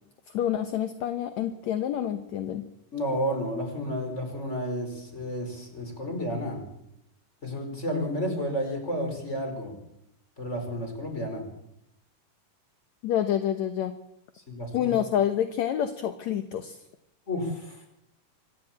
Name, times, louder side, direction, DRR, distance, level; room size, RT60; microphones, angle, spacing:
voice 1, 0.3-2.7 13.0-13.9 14.7-16.8, left 10 dB, 65° left, 8 dB, 2.2 m, -28 dB
voice 2, 2.9-6.6 7.4-9.7 10.4-11.4 14.5-15.0 17.3-17.8, equal, 20° left, 4 dB, 5.1 m, -31 dB
26.0 x 13.5 x 8.7 m, 0.82 s
omnidirectional pair, 3.6 m